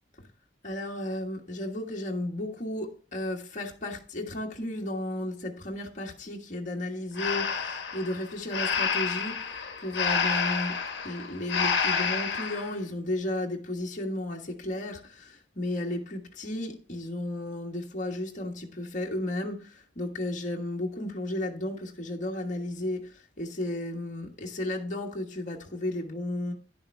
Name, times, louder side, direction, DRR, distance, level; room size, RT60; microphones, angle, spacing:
voice 1, 0.6-26.5, left 1 dB, 45° left, 1.5 m, -34 dB
Breathing, 7.2-12.7, left 5 dB, 65° left, 1.3 m, -29 dB
10.5 x 6.9 x 3.4 m
head